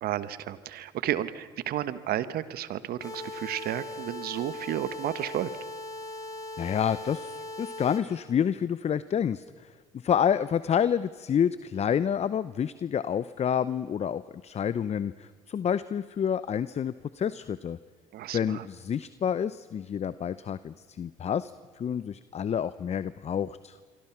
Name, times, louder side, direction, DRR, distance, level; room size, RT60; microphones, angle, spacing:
voice 1, 0.0-5.5 18.1-18.7, right 12 dB, 65° right, 14 dB, 1.3 m, -32 dB
sound 1, 3.0-8.0, left 2 dB, 20° left, 7.5 m, -39 dB
voice 2, 6.6-9.4 10.0-17.8 18.3-21.5 21.8-23.8, left 8 dB, 40° left, 16 dB, 0.7 m, -28 dB
27.5 x 24.5 x 5.9 m, 1.5 s
supercardioid pair, 70°, 17 cm